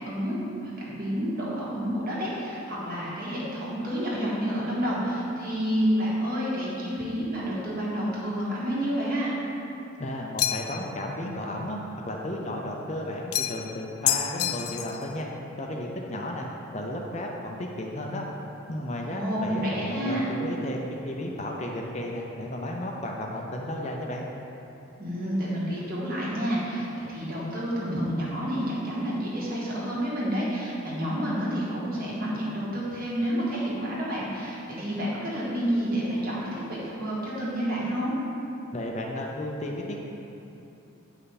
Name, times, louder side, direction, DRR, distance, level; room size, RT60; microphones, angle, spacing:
voice 1, 0.0-9.3 19.0-20.2 25.0-38.1, equal, 45° right, -7 dB, 1.8 m, -29 dB
voice 2, 10.0-11.8 12.0-15.3 15.6-16.5 16.7-18.3 18.7-24.2 38.7-40.0, left 1 dB, 30° left, 0 dB, 0.6 m, -33 dB
sound 1, 10.4-10.9 13.3-13.7 14.1-15.0, left 12 dB, 90° left, 0.4 m, -27 dB
8.9 x 5.5 x 4.1 m, 2.9 s
head